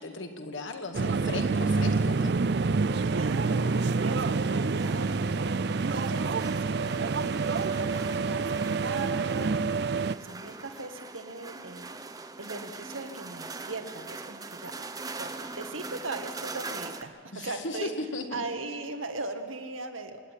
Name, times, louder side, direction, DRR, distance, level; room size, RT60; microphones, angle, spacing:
voice 1, 0.0-2.3 17.3-18.4, left 2 dB, 70° left, 5 dB, 2.2 m, -36 dB
sound 1, 0.9-10.2, right 4 dB, 55° right, 0.4 m, -27 dB
voice 2, 3.0-17.9 18.3-20.3, right 3 dB, 90° right, 6 dB, 1.8 m, -39 dB
sound 2, 3.3-17.0, right 3 dB, 20° right, 0.8 m, -42 dB
26.5 x 10.5 x 10.0 m, 2.1 s
head